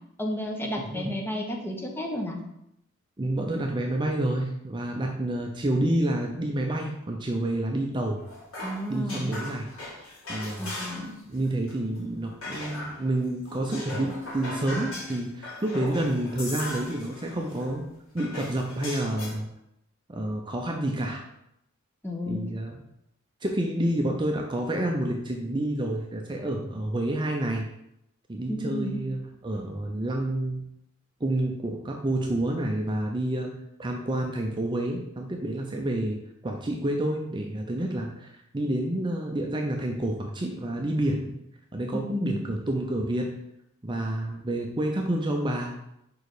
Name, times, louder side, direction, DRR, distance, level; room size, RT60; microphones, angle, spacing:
voice 1, 0.2-2.4 8.6-9.3 10.6-11.1 22.0-22.4 28.5-29.0 41.9-42.4, left 1 dB, 10° left, 1 dB, 0.9 m, -32 dB
voice 2, 3.2-8.2 8.9-9.7 10.3-10.8 11.3-17.9 18.1-19.5 20.1-21.2 22.3-22.8 23.4-27.7 28.3-30.6 31.2-33.5 33.8-41.4 41.7-43.3 43.8-45.7, right 1 dB, 20° right, 2 dB, 0.5 m, -29 dB
sound 1, 8.2-11.2 11.4-13.1 13.5-17.8 18.2-19.3, left 1 dB, 75° left, 2.5 m, -38 dB
5.1 x 4.7 x 4.8 m, 0.81 s
head